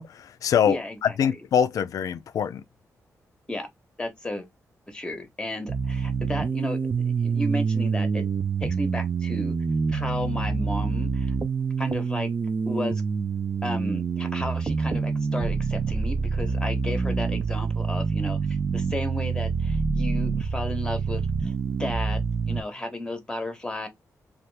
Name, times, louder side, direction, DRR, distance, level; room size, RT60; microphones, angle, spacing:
voice 1, 0.0-2.6, left 8 dB, 75° left, 0.3 m, -24 dB
voice 2, 0.7-1.4 3.5-3.7 4.0-4.5 4.9-8.2 8.6-9.6 9.9-11.3 11.8-12.3 12.7-13.0 13.6-23.9, left 1 dB, 15° left, 0.8 m, -33 dB
sound 1, 5.7-22.6, right 5 dB, 35° right, 0.4 m, -26 dB
2.8 x 2.3 x 3.3 m
wide cardioid pair, 115°, 6 cm